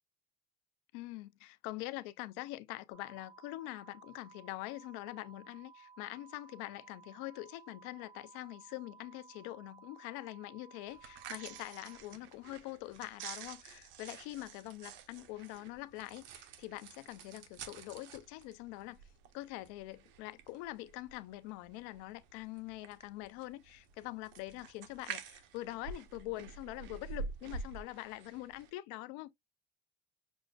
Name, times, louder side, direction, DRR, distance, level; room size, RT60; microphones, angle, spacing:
voice 1, 0.9-19.0 19.3-29.3, left 18 dB, 90° left, 0.4 m, -44 dB
sound 1, 2.9-12.0, right 6 dB, 25° right, 1.1 m, -58 dB
sound 2, 10.9-28.7, right 5 dB, 70° right, 0.7 m, -49 dB
6.1 x 2.4 x 2.2 m
cardioid pair, 115°, 20 cm